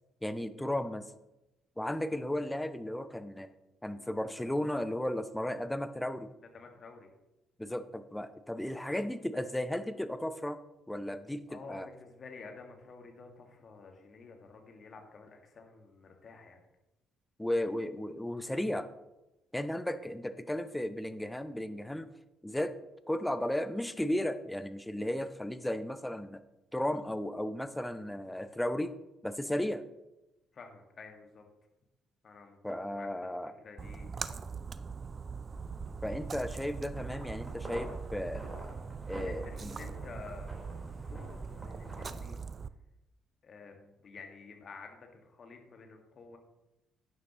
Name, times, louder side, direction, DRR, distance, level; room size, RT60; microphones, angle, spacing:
voice 1, 0.2-1.1 1.8-3.5 3.8-6.3 7.6-10.6 10.9-11.9 17.4-18.9 19.5-22.1 22.4-22.7 23.1-26.4 26.7-29.0 29.2-29.8 32.6-33.5 36.0-38.5 39.1-39.7, left 1 dB, 5° left, 11 dB, 0.7 m, -34 dB
voice 2, 6.4-7.1 11.5-16.6 30.5-31.4 32.2-34.3 39.2-40.6 41.1-42.5 43.4-46.4, left 4 dB, 45° left, 4 dB, 1.8 m, -50 dB
Splash splatter, 33.8-42.7, right 5 dB, 35° right, 0.4 m, -41 dB
sound 1, 35.5-42.2, equal, 10° right, 4.1 m, -48 dB
12.0 x 9.6 x 3.0 m, 0.96 s
figure-of-eight pair, 45°, 0 cm